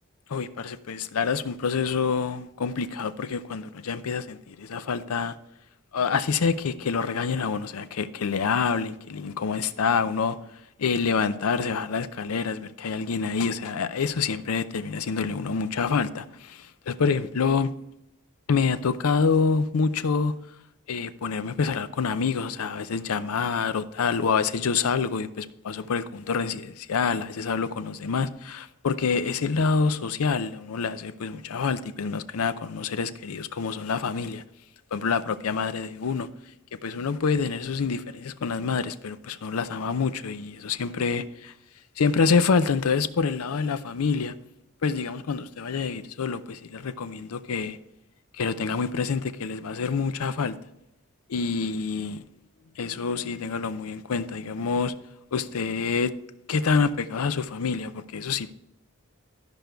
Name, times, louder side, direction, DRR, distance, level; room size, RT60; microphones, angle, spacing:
voice 1, 0.3-5.4 5.9-10.4 10.8-17.7 18.5-20.4 20.9-34.4 34.9-36.3 36.7-41.5 42.0-44.3 44.8-47.8 48.4-50.6 51.3-52.2 52.8-54.9 55.3-56.1 56.5-58.5, left 5 dB, 80° left, 0.5 m, -27 dB
12.5 x 5.2 x 4.6 m
head